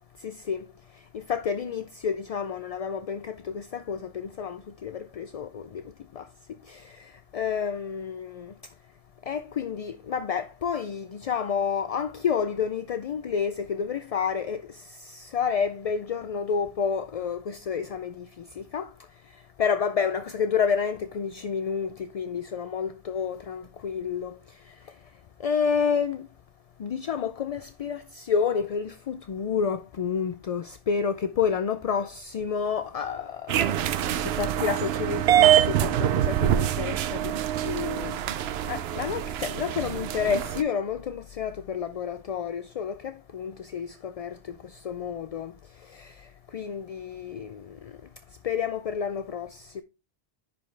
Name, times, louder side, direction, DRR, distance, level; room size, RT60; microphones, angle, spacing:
voice 1, 0.2-0.7 1.1-5.8 6.2-6.3 6.7-8.5 9.3-18.9 19.6-24.4 25.4-26.3 26.8-33.9 34.2-37.4 37.6-38.2 38.7-44.4 44.6-45.5 45.9-46.3 46.5-47.9 48.4-49.8, left 6 dB, 50° left, 0.4 m, -30 dB
sound 1, 33.5-40.6, right 11 dB, 85° right, 0.8 m, -25 dB
10.5 x 5.2 x 3.3 m
omnidirectional pair, 1.0 m